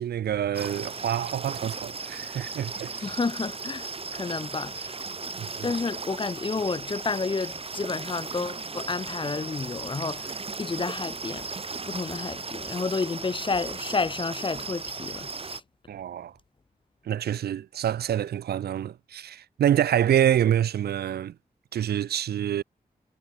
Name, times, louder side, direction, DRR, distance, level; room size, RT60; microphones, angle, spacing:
voice 1, 0.0-3.2 5.4-5.7 15.9-16.4 17.0-21.4 21.7-22.6, right 10 dB, 85° right, 0.5 m, -26 dB
sound 1, 0.5-15.6, right 4 dB, 35° right, 1.2 m, -36 dB
voice 2, 3.0-5.0 5.6-11.5 11.9-15.6, left 4 dB, 30° left, 0.6 m, -31 dB
cardioid pair, 65°, 16 cm